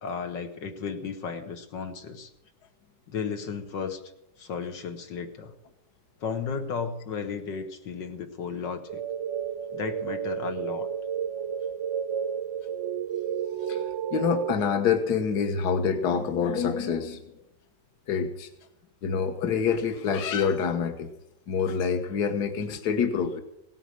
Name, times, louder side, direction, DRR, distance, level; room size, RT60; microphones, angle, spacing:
voice 1, 0.0-2.3 3.1-4.0 4.4-5.5 6.2-9.0 9.7-10.9, left 5 dB, 90° left, 5 dB, 2.1 m, -34 dB
sound 1, 8.9-14.5, right 8 dB, 60° right, 0.7 m, -31 dB
voice 2, 14.1-17.2 18.1-18.5 19.0-21.1 21.5-23.4, left 6 dB, 65° left, 7 dB, 1.8 m, -26 dB
17.5 x 10.0 x 6.5 m, 0.82 s
omnidirectional pair, 1.9 m